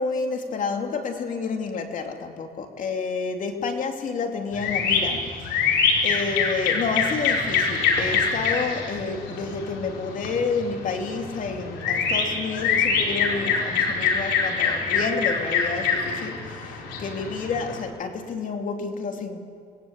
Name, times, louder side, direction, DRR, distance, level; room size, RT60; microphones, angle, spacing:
voice 1, 0.0-19.4, left 4 dB, 50° left, 4 dB, 3.0 m, -30 dB
sound 1, 4.5-17.8, left 5 dB, 85° left, 5.1 m, -25 dB
27.5 x 20.0 x 8.3 m, 2.3 s
cardioid pair, 110°, 17 cm